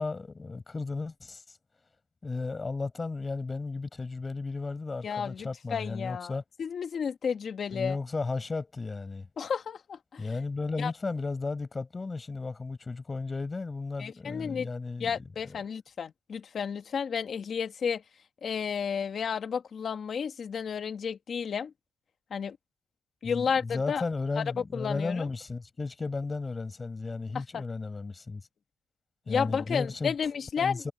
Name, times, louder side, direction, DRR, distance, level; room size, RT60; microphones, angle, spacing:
voice 1, 0.0-1.4 2.2-6.4 7.7-9.3 10.2-15.2 15.4-15.6 23.2-28.4 29.3-30.1 30.6-30.9, left 3 dB, 25° left, 6.8 m, -34 dB
voice 2, 5.0-6.3 6.6-8.0 9.4-10.2 10.8-10.9 14.0-14.7 15.0-18.0 18.4-21.7 22.3-22.6 23.2-24.0 24.4-24.5 24.7-25.3 27.3-27.6 29.3-30.9, left 6 dB, 50° left, 1.6 m, -32 dB
cardioid pair, 90°, 0 cm